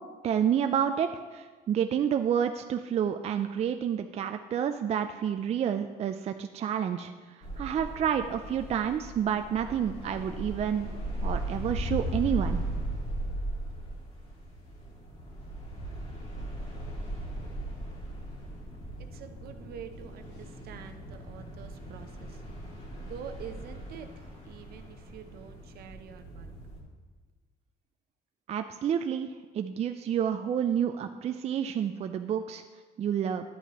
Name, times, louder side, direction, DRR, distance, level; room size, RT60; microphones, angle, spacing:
voice 1, 0.2-10.9 11.2-12.6 28.5-32.6 33.0-33.4, right 8 dB, 40° right, 7 dB, 0.4 m, -29 dB
sound 1, 7.4-26.8, right 1 dB, 40° left, 2.0 m, -38 dB
voice 2, 19.0-22.4 23.0-26.5, right 8 dB, 65° right, 8 dB, 0.7 m, -46 dB
11.0 x 8.2 x 3.0 m, 1.4 s
cardioid pair, 110°, 17 cm